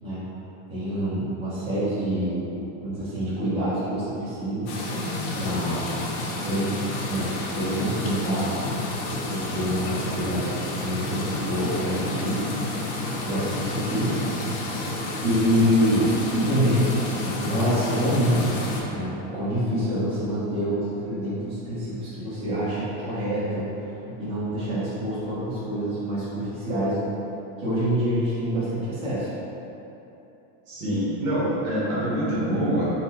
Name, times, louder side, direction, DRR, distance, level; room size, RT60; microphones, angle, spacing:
voice 1, 0.7-2.5 2.8-4.7 5.3-5.9 6.4-10.5 10.8-12.8 13.2-14.2 15.2-18.5 18.9-23.6 24.2-27.1 27.6-29.3, equal, 15° right, -13 dB, 1.0 m, -26 dB
sound 1, 4.7-18.8, left 2 dB, 70° left, 0.8 m, -30 dB
voice 2, 5.5-5.8 30.7-32.9, equal, 55° right, -7 dB, 1.1 m, -26 dB
4.2 x 2.2 x 4.2 m, 3.0 s
supercardioid pair, 180°, 39 cm